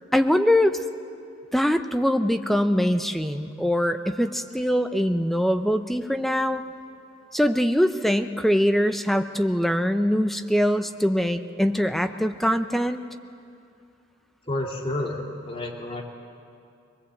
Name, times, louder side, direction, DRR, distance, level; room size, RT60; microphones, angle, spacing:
voice 1, 0.1-0.8 1.5-6.6 7.3-13.0, equal, ahead, 8 dB, 0.6 m, -23 dB
voice 2, 14.5-16.0, left 1 dB, 30° left, 0 dB, 2.4 m, -30 dB
23.0 x 20.0 x 7.9 m, 2.5 s
head